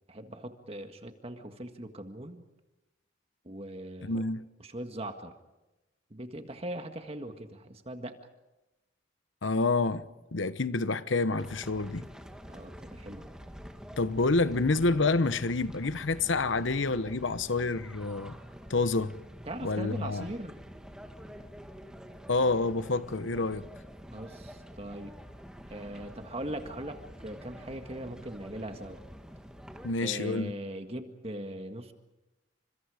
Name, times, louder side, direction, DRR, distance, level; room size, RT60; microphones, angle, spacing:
voice 1, 0.1-2.4 3.4-4.2 4.6-5.3 6.1-8.2 12.5-13.3 19.5-20.6 24.1-25.1 25.7-29.0 30.0-31.9, right 1 dB, 30° right, 1.8 m, -40 dB
voice 2, 4.0-4.4 9.4-10.0 10.3-12.1 14.0-18.3 18.7-19.2 19.6-20.3 22.3-23.7 29.8-30.5, left 3 dB, 90° left, 1.0 m, -28 dB
sound 1, 11.4-29.9, equal, 5° right, 1.9 m, -47 dB
29.5 x 26.5 x 5.0 m
head